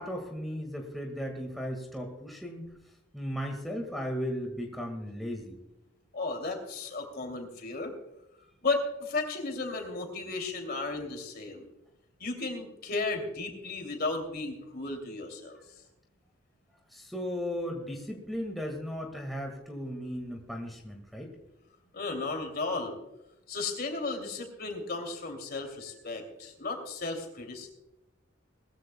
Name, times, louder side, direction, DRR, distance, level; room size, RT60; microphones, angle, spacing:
voice 1, 0.0-2.7 3.1-5.6 16.9-21.3, equal, ahead, 1 dB, 1.7 m, -36 dB
voice 2, 6.1-7.9 8.6-11.7 12.2-15.6 21.9-22.9 23.5-27.7, left 3 dB, 50° left, 4 dB, 2.7 m, -34 dB
20.5 x 14.5 x 2.2 m, 0.91 s
head